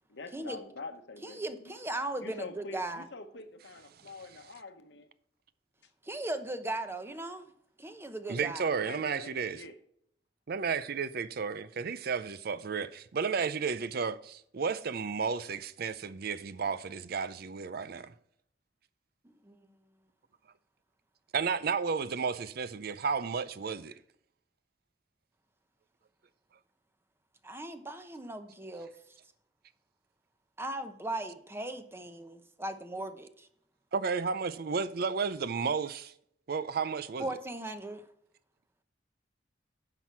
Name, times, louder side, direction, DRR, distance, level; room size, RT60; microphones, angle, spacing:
voice 1, 0.1-1.7 2.2-5.1 8.8-9.7, left 3 dB, 75° left, 1.1 m, -45 dB
voice 2, 1.2-3.1 6.0-7.5 7.8-8.7 19.2-19.6 27.4-28.9 30.6-33.5 37.2-38.0, right 1 dB, 15° right, 0.8 m, -38 dB
voice 3, 8.3-9.6 10.5-18.1 21.3-23.9 33.9-36.1 36.5-37.3, right 5 dB, 60° right, 0.5 m, -32 dB
9.8 x 6.0 x 4.6 m
head